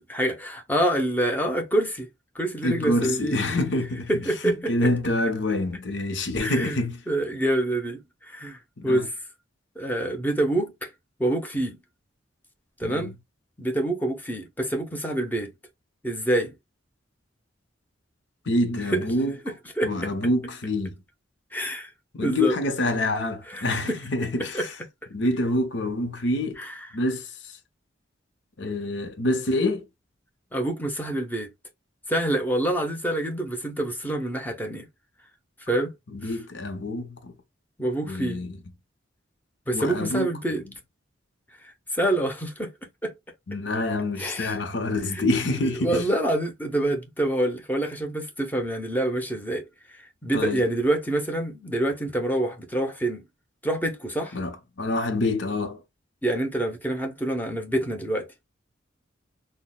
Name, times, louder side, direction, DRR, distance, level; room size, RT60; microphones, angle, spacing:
voice 1, 0.1-2.1 2.3-3.4 4.1-4.9 6.4-6.8 7.1-9.1 9.8-10.9 11.2-11.8 12.8-13.1 13.6-15.5 16.0-16.5 18.8-19.1 19.4-20.1 21.5-21.9 22.2-22.6 23.5-24.0 24.5-24.7 26.6-26.9 30.5-31.5 32.1-34.9 35.7-35.9 36.2-36.4 37.8-38.4 39.7-40.6 41.9-42.7 43.0-43.1 44.2-44.6 45.1-45.2 45.6-49.6 50.2-53.2 53.6-54.4 56.2-58.3, right 1 dB, 10° left, 0.8 m, -26 dB
voice 2, 2.6-4.1 4.4-7.0 8.8-9.1 12.8-13.1 18.5-19.3 19.8-20.9 22.1-24.7 25.1-26.6 26.9-27.3 28.6-29.8 36.1-37.3 38.1-38.6 39.7-40.3 43.5-46.0 50.3-50.6 54.3-55.8, left 1 dB, 65° left, 0.9 m, -26 dB
5.9 x 2.2 x 2.3 m
head